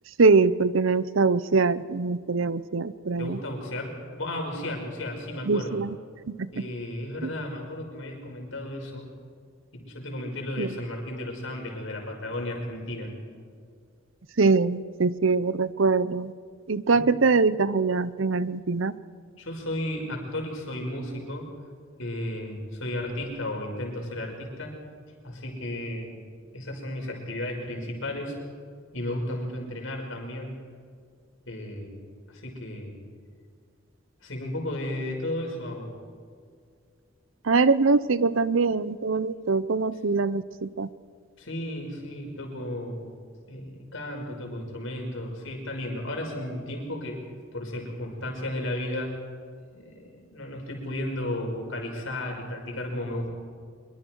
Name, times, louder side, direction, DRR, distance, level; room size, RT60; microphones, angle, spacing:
voice 1, 0.2-3.4 5.5-5.9 6.3-6.7 10.6-10.7 14.4-16.3 16.7-19.0 37.4-40.9, right 4 dB, 70° right, 16 dB, 0.7 m, -23 dB
voice 2, 3.2-5.8 6.5-9.1 9.7-13.1 16.9-17.0 19.4-21.5 22.0-24.8 25.2-26.2 26.5-28.4 28.9-30.6 31.5-31.9 32.3-32.9 34.2-35.9 41.4-43.1 43.5-47.2 47.5-49.2 49.7-53.3, left 1 dB, 70° left, 1 dB, 5.6 m, -34 dB
25.0 x 23.5 x 4.7 m, 2.2 s
head